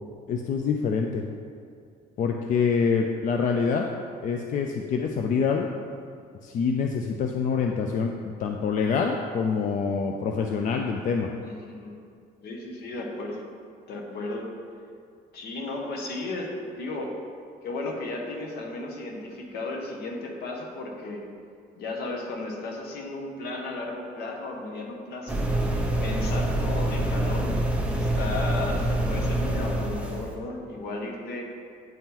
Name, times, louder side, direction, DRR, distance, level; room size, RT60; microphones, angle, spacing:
voice 1, 0.3-1.2 2.2-3.9 4.2-5.7 6.4-11.3, left 5 dB, 50° left, 2 dB, 0.4 m, -26 dB
voice 2, 11.4-12.0 12.4-13.4 13.9-14.5 15.3-17.1 17.6-21.2 21.8-25.4 26.0-27.6 27.9-31.4, left 2 dB, 70° left, 1 dB, 1.0 m, -34 dB
sound 1, 25.3-30.3, right 1 dB, 5° right, 0.7 m, -26 dB
9.0 x 3.7 x 2.9 m, 2.3 s
cardioid pair, 110°, 17 cm